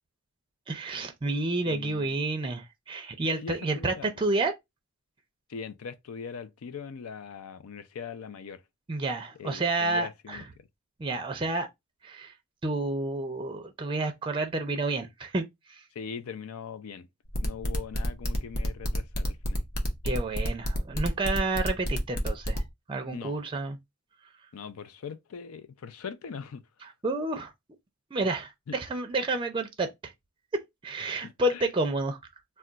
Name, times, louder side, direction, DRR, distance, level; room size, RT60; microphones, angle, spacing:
voice 1, 0.7-4.5 8.9-10.4 11.0-11.7 12.0-12.3 12.6-15.8 20.0-22.6 22.9-23.8 27.0-27.5 28.1-30.1 30.8-32.2, right 2 dB, 25° right, 0.4 m, -30 dB
voice 2, 1.6-2.2 3.3-4.1 5.5-8.6 9.3-10.7 15.9-17.1 17.4-19.7 23.1-23.4 24.5-26.9 28.7-28.8 31.2-31.7, left 6 dB, 85° left, 0.4 m, -41 dB
sound 1, 17.3-22.6, equal, 50° left, 0.7 m, -31 dB
2.3 x 2.2 x 3.8 m
head